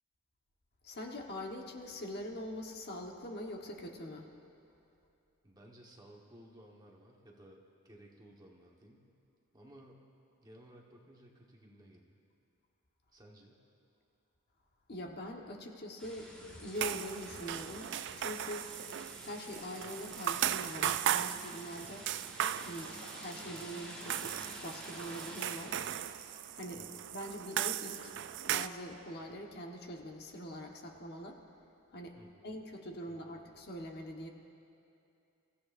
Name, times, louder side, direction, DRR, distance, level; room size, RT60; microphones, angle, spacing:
voice 1, 0.8-4.3 14.9-18.7 19.2-22.1 22.6-24.3 24.6-25.8 26.5-26.9 27.1-28.1 28.4-31.4 31.9-32.1 32.4-34.3, equal, 45° left, 1 dB, 1.2 m, -43 dB
voice 2, 5.4-9.1 9.5-10.1 10.4-12.2 13.1-13.6 22.8-23.1 26.7-27.0 32.2-32.5 33.1-33.4, right 1 dB, 20° right, -1 dB, 1.3 m, -57 dB
sound 1, 16.0-26.0, equal, 5° left, 2.1 m, -50 dB
sound 2, 16.8-28.7, right 11 dB, 55° right, 0.3 m, -37 dB
30.0 x 15.5 x 2.6 m, 2.7 s
head